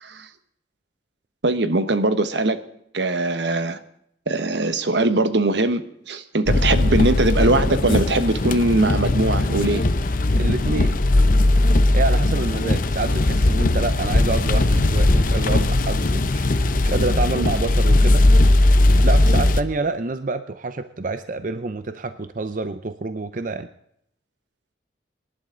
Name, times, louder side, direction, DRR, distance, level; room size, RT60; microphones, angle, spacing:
voice 1, 1.4-2.6 2.9-3.8 4.3-9.8, right 2 dB, 75° right, 10 dB, 1.2 m, -21 dB
sound 1, 6.5-19.6, left 2 dB, 50° left, 0.8 m, -18 dB
voice 2, 10.4-11.0 11.9-16.5 16.8-18.3 19.0-23.7, right 3 dB, 50° right, 10 dB, 0.6 m, -27 dB
25.0 x 11.5 x 3.8 m, 0.74 s
head